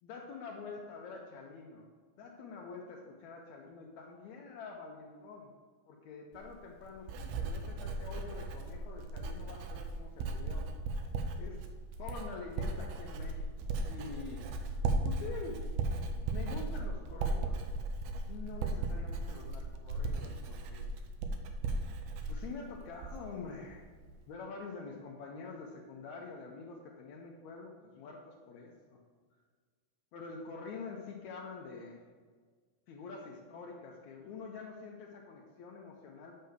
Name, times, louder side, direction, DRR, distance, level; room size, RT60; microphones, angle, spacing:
voice 1, 0.0-1.9 2.1-5.5 5.9-10.6 11.4-11.6 12.0-14.7 15.0-15.6 16.3-17.6 18.3-20.9 22.3-23.8 24.3-29.0 30.1-32.0 32.9-36.3, left 4 dB, 80° left, -1 dB, 1.6 m, -46 dB
Writing, 6.3-23.4 23.7-24.1, right 2 dB, 85° right, 2.4 m, -37 dB
6.7 x 5.7 x 6.5 m, 1.5 s
omnidirectional pair, 4.2 m